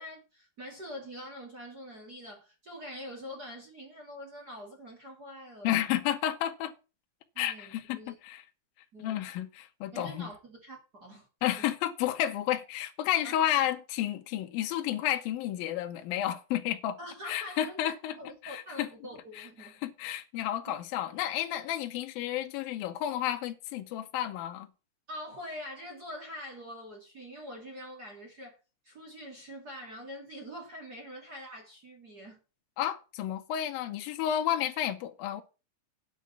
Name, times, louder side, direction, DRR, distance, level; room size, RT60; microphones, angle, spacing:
voice 1, 0.0-5.8 7.3-8.1 8.9-9.3 9.9-11.3 11.6-11.7 13.2-13.3 17.0-19.8 20.7-20.8 25.1-28.6 28.8-32.4, equal, 35° right, 1.5 m, -44 dB
voice 2, 5.6-6.7 7.4-8.4 9.0-10.3 11.4-17.0 17.3-18.2 18.4-18.9 19.4-24.7 32.8-35.4, left 12 dB, 85° left, 2.0 m, -31 dB
10.0 x 7.2 x 5.6 m
omnidirectional pair, 5.7 m